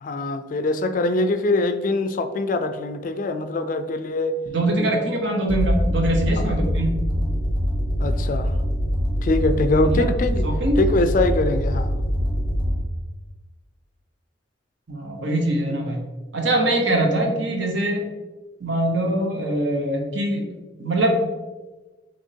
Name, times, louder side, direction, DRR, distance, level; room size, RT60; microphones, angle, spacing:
voice 1, 0.0-4.4 4.8-5.0 6.4-6.5 8.0-8.6 9.2-10.5 10.8-12.0, left 2 dB, 45° left, 9 dB, 0.3 m, -23 dB
voice 2, 4.5-6.9 9.8-10.1 10.4-10.8 14.9-16.0 16.3-18.0 18.6-20.5 20.8-21.2, right 1 dB, 70° right, 2 dB, 1.0 m, -23 dB
sound 1, 5.5-12.8, equal, 10° right, 0.8 m, -23 dB
6.2 x 2.9 x 2.8 m, 1.2 s
head